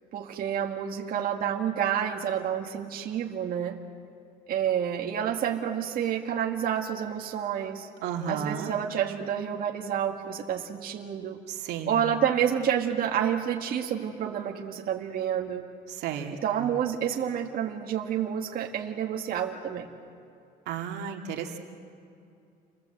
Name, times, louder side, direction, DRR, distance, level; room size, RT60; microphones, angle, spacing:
voice 1, 0.1-3.8 4.5-7.9 8.3-11.4 11.9-15.7 16.4-19.9, right 9 dB, 60° right, 1 dB, 2.0 m, -29 dB
voice 2, 8.0-8.7 11.5-12.1 15.9-16.7 20.7-21.6, right 7 dB, 85° right, 2 dB, 2.4 m, -33 dB
29.5 x 21.0 x 8.1 m, 2.6 s
cardioid pair, 110°, 17 cm